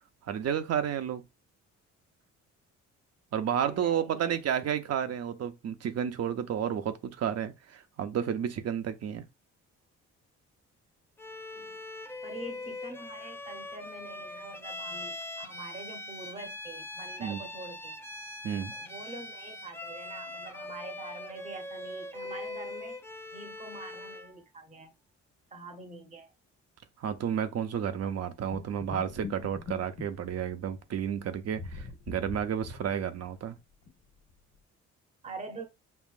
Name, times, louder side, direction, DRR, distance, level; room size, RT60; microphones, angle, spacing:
voice 1, 0.2-1.2 3.3-9.2 17.2-17.4 18.4-18.7 27.0-33.6, right 8 dB, 55° right, 0.7 m, -31 dB
voice 2, 3.6-4.4 11.5-11.8 12.2-18.0 18.8-23.0 23.3-24.9 25.5-26.3 35.2-35.7, right 2 dB, 25° right, 0.9 m, -45 dB
Bowed string instrument, 11.2-24.4, left 2 dB, 10° left, 0.5 m, -42 dB
sound 1, 28.5-30.8 31.5-33.5 33.8-33.9 34.3-34.4, left 4 dB, 90° left, 1.3 m, -43 dB
5.6 x 2.5 x 2.4 m
cardioid pair, 90°, 30 cm